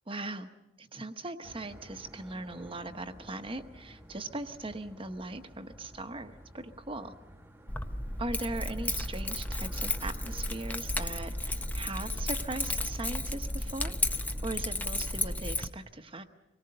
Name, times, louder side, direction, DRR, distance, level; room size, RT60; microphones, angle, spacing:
voice 1, 0.1-0.5 0.8-7.1 8.2-16.2, right 2 dB, 30° right, 8 dB, 1.0 m, -39 dB
sound 1, 1.4-15.4, equal, 10° right, 1.3 m, -52 dB
Keys jangling, 7.7-15.7, left 1 dB, 10° left, 0.7 m, -33 dB
25.5 x 18.5 x 6.7 m, 1.0 s
head